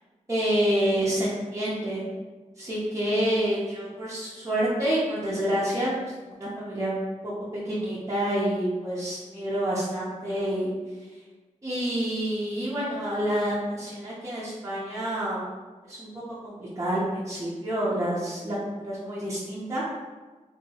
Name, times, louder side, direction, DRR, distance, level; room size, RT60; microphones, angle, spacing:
voice 1, 0.3-2.0 2.6-7.3 7.6-10.7 11.6-15.5 15.8-16.1 16.4-18.6 18.8-19.8, right 1 dB, 25° right, -9 dB, 0.7 m, -28 dB
2.8 x 2.7 x 2.8 m, 1.3 s
wide cardioid pair, 80°, 13 cm